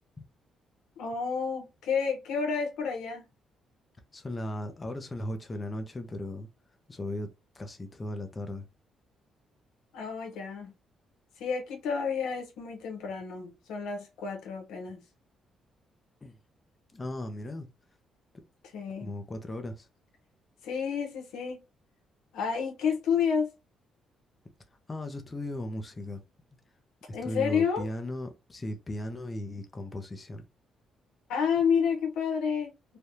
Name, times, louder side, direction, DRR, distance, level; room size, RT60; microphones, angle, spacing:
voice 1, 1.0-3.2 9.9-10.7 11.4-15.0 18.7-19.1 20.6-21.6 22.3-23.5 27.1-27.9 31.3-33.0, left 6 dB, 90° left, 1.0 m, -30 dB
voice 2, 4.1-6.5 6.9-8.7 16.2-16.4 16.9-17.7 19.0-19.9 24.9-26.2 27.1-30.4, left 1 dB, 25° left, 0.6 m, -37 dB
3.3 x 2.2 x 2.7 m
cardioid pair, 90°, 0 cm